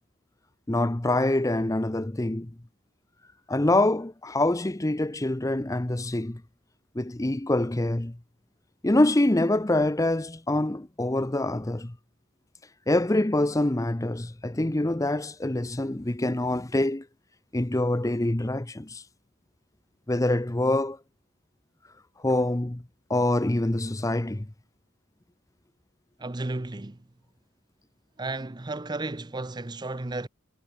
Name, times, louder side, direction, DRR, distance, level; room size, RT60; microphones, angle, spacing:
voice 1, 0.7-2.5 3.5-6.4 6.9-8.2 8.8-11.9 12.9-17.1 17.5-19.0 20.1-21.0 22.2-22.8 23.1-24.5, left 1 dB, 15° left, 0.7 m, -25 dB
voice 2, 26.2-27.0 28.2-30.3, right 2 dB, 20° right, 0.7 m, -33 dB
head